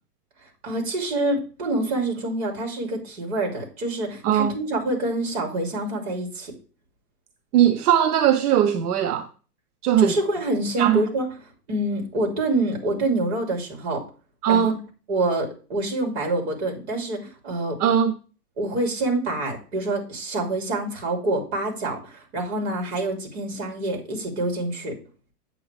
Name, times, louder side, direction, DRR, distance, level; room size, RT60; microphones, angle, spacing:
voice 1, 0.6-6.5 10.0-11.3 11.7-14.0 14.5-14.8 15.1-17.8 18.6-25.0, right 2 dB, 40° right, 3.1 m, -26 dB
voice 2, 7.5-9.3 9.8-10.1 10.8-11.0 14.4-14.7 17.8-18.2, right 10 dB, 70° right, 0.9 m, -19 dB
8.7 x 7.9 x 3.4 m
supercardioid pair, 180°, 47 cm